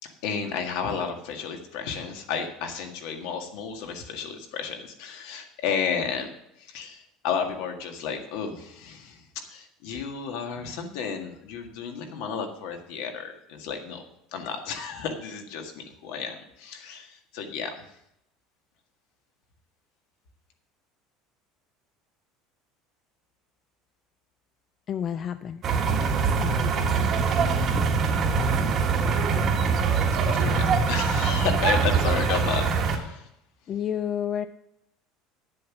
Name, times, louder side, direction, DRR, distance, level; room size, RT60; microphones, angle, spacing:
voice 1, 0.0-6.3 6.6-9.2 9.5-14.1 14.3-17.8 30.3-33.3, left 6 dB, 65° left, 4 dB, 1.8 m, -32 dB
voice 2, 24.9-25.6 26.4-27.0 33.7-34.5, left 9 dB, 30° left, 11 dB, 0.3 m, -30 dB
sound 1, 25.6-33.0, right 5 dB, 30° right, 1.2 m, -23 dB
10.0 x 7.6 x 6.1 m, 0.79 s
cardioid pair, 175°, 0 cm